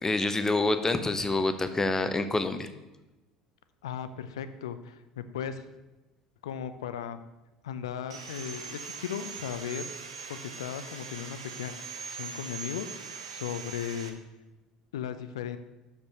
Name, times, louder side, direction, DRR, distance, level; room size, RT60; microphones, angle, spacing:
voice 1, 0.0-2.7, left 2 dB, 15° left, 10 dB, 0.7 m, -27 dB
voice 2, 3.8-5.6 6.4-7.2 7.6-9.8 10.3-11.7 12.1-14.2 14.9-15.6, left 8 dB, 75° left, 11 dB, 0.5 m, -36 dB
Sawing, 8.1-14.1, right 6 dB, 80° right, 0.8 m, -41 dB
6.7 x 5.3 x 5.7 m, 1.1 s
figure-of-eight pair, 70°, 3 cm